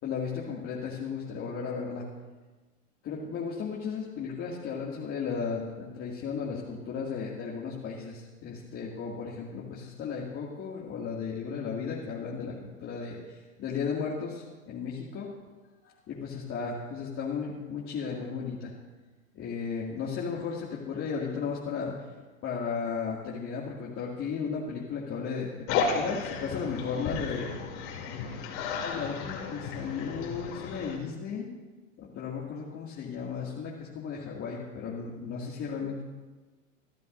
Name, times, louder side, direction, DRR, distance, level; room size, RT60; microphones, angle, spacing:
voice 1, 0.0-2.0 3.0-15.3 15.8-18.7 19.3-22.1 22.4-27.6 28.5-31.5 32.0-36.0, left 6 dB, 30° left, -4 dB, 2.4 m, -35 dB
sound 1, 25.7-31.0, left 5 dB, 50° left, 3.2 m, -33 dB
27.5 x 12.5 x 2.7 m, 1.2 s
hypercardioid pair, 105°, 42 cm